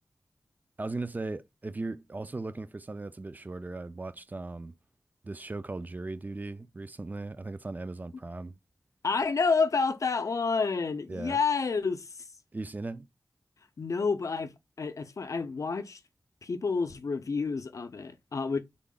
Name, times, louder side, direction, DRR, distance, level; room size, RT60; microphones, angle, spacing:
voice 1, 0.8-4.7 5.2-8.6 11.1-11.4 12.5-13.1, right 2 dB, 30° right, 0.3 m, -38 dB
voice 2, 9.0-12.3 13.8-16.0 16.4-18.6, left 4 dB, 65° left, 0.5 m, -29 dB
3.5 x 2.1 x 3.7 m
wide cardioid pair, 70°, 6 cm